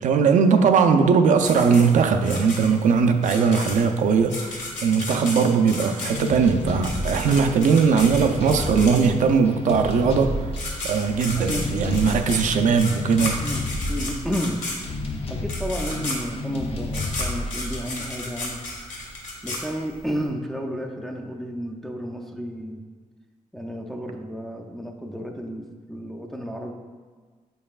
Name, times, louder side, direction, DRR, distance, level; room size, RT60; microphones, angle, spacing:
voice 1, 0.0-10.4 10.8-13.4, right 5 dB, 70° right, 6 dB, 0.4 m, -19 dB
sound 1, 1.4-9.4 10.2-10.3 10.5-20.2, left 2 dB, 75° left, 1.6 m, -33 dB
sound 2, 6.0-18.8, left 2 dB, 45° left, 0.7 m, -32 dB
voice 2, 11.3-12.2 13.4-14.6 15.3-18.6 19.4-22.8 23.5-26.7, equal, ahead, 1 dB, 0.4 m, -32 dB
7.5 x 5.4 x 2.4 m, 1.5 s
wide cardioid pair, 165°, 13 cm